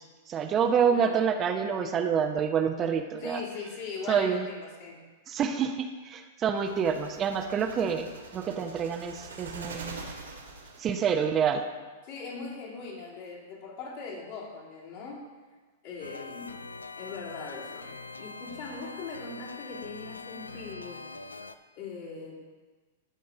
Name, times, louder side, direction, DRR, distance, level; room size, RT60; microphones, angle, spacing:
voice 1, 0.0-3.4 4.1-4.5 5.3-8.1 8.3-10.0 10.8-11.6, right 7 dB, 30° right, 6 dB, 0.7 m, -27 dB
voice 2, 0.9-1.3 3.2-5.0 12.0-15.3 15.8-16.6 17.0-21.1 21.7-22.4, left 4 dB, 55° left, -4 dB, 2.8 m, -40 dB
sound 1, 6.6-11.1, right 3 dB, 80° right, 1.6 m, -44 dB
sound 2, 16.0-21.5, left 3 dB, 90° left, 0.4 m, -43 dB
15.5 x 5.2 x 3.9 m, 1.3 s
hypercardioid pair, 105°, 0 cm